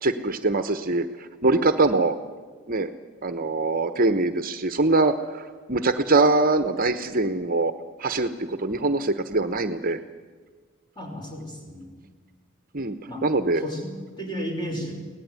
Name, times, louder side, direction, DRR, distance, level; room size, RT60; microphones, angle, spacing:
voice 1, 0.0-2.2 2.7-2.9 3.2-7.7 8.0-10.0 12.7-12.9 13.2-13.6, right 3 dB, 40° right, 9 dB, 1.0 m, -23 dB
voice 2, 11.0-11.9 13.1-13.2 13.5-14.9, equal, 20° left, 2 dB, 5.6 m, -33 dB
23.5 x 18.0 x 9.6 m, 1.5 s
head